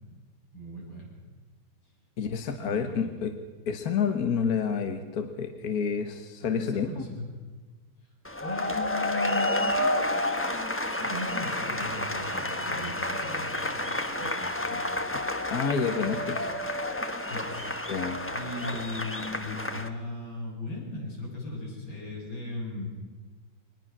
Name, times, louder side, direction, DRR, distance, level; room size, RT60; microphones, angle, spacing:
voice 1, 0.5-1.2 2.5-3.1 6.4-7.2 8.4-13.8 14.2-14.8 16.0-16.2 17.3-17.8 18.3-22.9, left 2 dB, 75° left, -3 dB, 7.9 m, -38 dB
voice 2, 2.2-3.3 3.7-6.9 15.5-16.5 17.9-18.2, left 6 dB, 55° left, 7 dB, 1.5 m, -29 dB
sound 1, 8.2-19.9, left 1 dB, 15° left, 0.5 m, -30 dB
23.0 x 20.0 x 6.0 m, 1.4 s
omnidirectional pair, 2.1 m